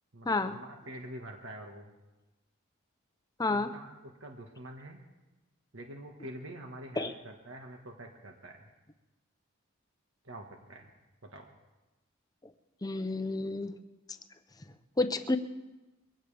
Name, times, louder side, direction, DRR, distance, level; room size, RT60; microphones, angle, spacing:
voice 1, 0.1-1.9 3.5-5.0 5.7-8.7 10.2-10.9 11.2-11.5, right 1 dB, 75° right, 2 dB, 1.7 m, -46 dB
voice 2, 3.4-3.7 7.0-7.1 12.8-13.7 15.0-15.4, left 2 dB, 20° left, 9 dB, 0.7 m, -30 dB
23.0 x 17.0 x 3.5 m, 1.1 s
head